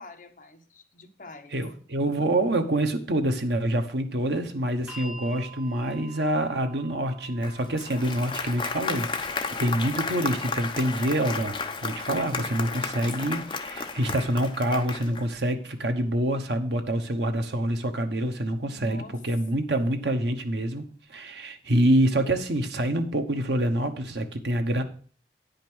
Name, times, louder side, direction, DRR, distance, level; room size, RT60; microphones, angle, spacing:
voice 1, 0.0-1.6 18.7-19.2, left 2 dB, 50° left, 1.1 m, -46 dB
voice 2, 1.5-11.6 11.8-24.8, right 1 dB, 75° right, 1.1 m, -26 dB
sound 1, 4.9-17.0 18.0-18.1, right 2 dB, 10° right, 3.6 m, -50 dB
Applause, 7.4-15.3, left 4 dB, 25° left, 0.8 m, -33 dB
9.9 x 5.2 x 6.2 m
head